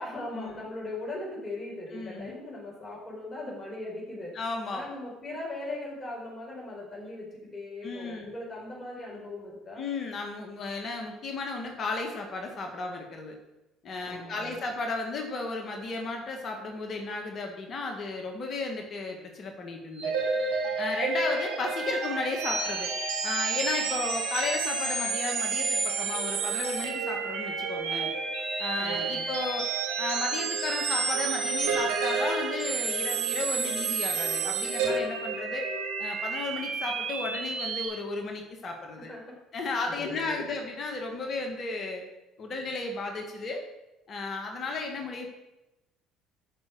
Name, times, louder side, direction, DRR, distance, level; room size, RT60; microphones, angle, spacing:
voice 1, 0.0-4.3 4.7-9.9 14.0-14.6 28.8-29.3 39.0-39.3 40.0-40.5, left 2 dB, 30° left, -3 dB, 4.6 m, -39 dB
voice 2, 1.9-2.3 4.3-4.9 7.8-8.3 9.8-13.4 13.8-20.1 20.8-22.9 23.2-28.1 28.6-29.7 30.0-35.7 36.0-39.1 39.5-42.0 42.4-43.6 44.1-45.3, left 3 dB, 45° left, 2 dB, 1.9 m, -34 dB
sound 1, 20.0-37.9, right 4 dB, 75° right, 2.4 m, -30 dB
12.0 x 5.8 x 6.4 m, 0.98 s
hypercardioid pair, 65°, 0 cm